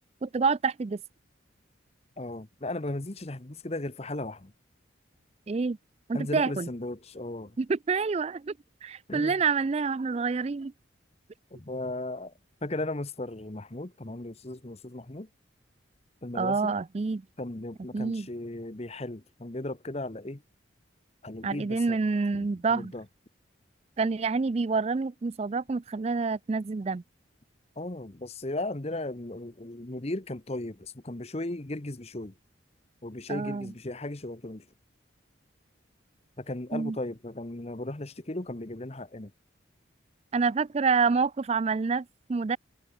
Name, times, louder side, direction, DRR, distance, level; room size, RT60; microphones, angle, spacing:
voice 1, 0.2-1.0 5.5-5.8 6.1-6.7 7.6-8.5 8.8-10.7 16.3-17.2 17.9-18.3 21.4-22.9 24.0-27.0 33.3-33.7 36.7-37.0 40.3-42.6, right 4 dB, 30° right, 0.4 m, -27 dB
voice 2, 2.2-4.5 6.1-7.6 9.1-9.4 11.5-12.3 12.6-15.3 16.2-16.7 17.4-20.4 21.2-22.0 22.3-23.0 27.8-32.3 33.0-34.6 36.4-39.3, left 2 dB, 30° left, 1.0 m, -36 dB
head